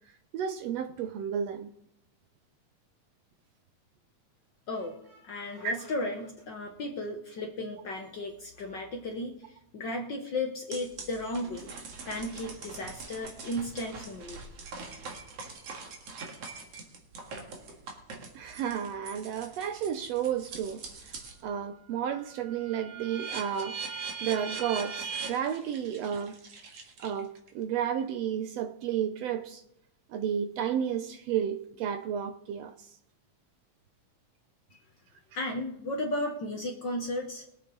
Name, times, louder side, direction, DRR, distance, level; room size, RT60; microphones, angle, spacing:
voice 1, 0.3-1.7 5.6-5.7 18.3-23.8 24.2-26.4 27.0-29.6 30.1-32.9, right 8 dB, 80° right, 1.5 m, -32 dB
voice 2, 4.7-11.7 12.0-14.4 34.7-34.8 35.3-37.4, left 1 dB, 65° left, 1.1 m, -35 dB
sound 1, 10.7-21.4 21.8-27.5, right 5 dB, 55° right, 2.7 m, -42 dB
22.0 x 8.4 x 3.9 m
omnidirectional pair, 3.6 m